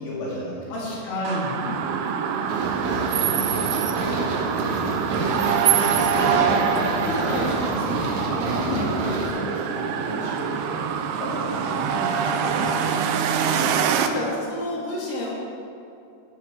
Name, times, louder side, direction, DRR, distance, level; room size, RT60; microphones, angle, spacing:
voice 1, 0.0-1.0 1.6-1.8 2.4-3.6 5.4-6.2 8.6-10.8 11.2-12.2 12.6-12.7 13.5-14.0, left 1 dB, 80° left, -6 dB, 4.3 m, -35 dB
voice 2, 0.7-1.6 5.3-8.2 11.1-11.2 11.7-13.0 14.0-15.3, left 1 dB, 50° left, -7 dB, 4.5 m, -31 dB
sound 1, 1.3-14.1, right 8 dB, 80° right, 2.5 m, -25 dB
sound 2, 2.5-9.3, right 2 dB, 55° right, 2.1 m, -28 dB
14.5 x 8.2 x 5.0 m, 2.6 s
omnidirectional pair, 5.0 m